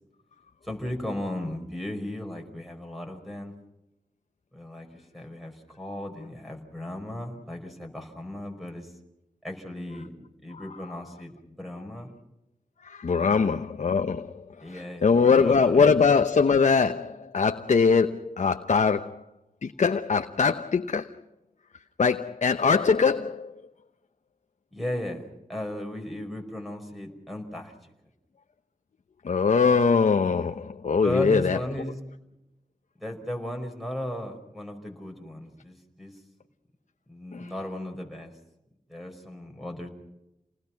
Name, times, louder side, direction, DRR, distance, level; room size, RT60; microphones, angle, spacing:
voice 1, 0.7-3.5 4.5-4.9 5.1-8.9 9.4-10.1 10.4-12.1 13.2-13.5 14.6-15.9 24.7-27.7 31.0-32.0 33.0-36.1 37.1-38.3 38.9-39.9, left 1 dB, ahead, 1 dB, 5.1 m, -35 dB
voice 2, 12.8-19.2 19.6-21.1 22.0-23.6 29.2-31.6 37.3-37.5, left 5 dB, 60° left, 7 dB, 0.9 m, -22 dB
29.5 x 19.5 x 6.0 m, 0.90 s
cardioid pair, 65°, 14 cm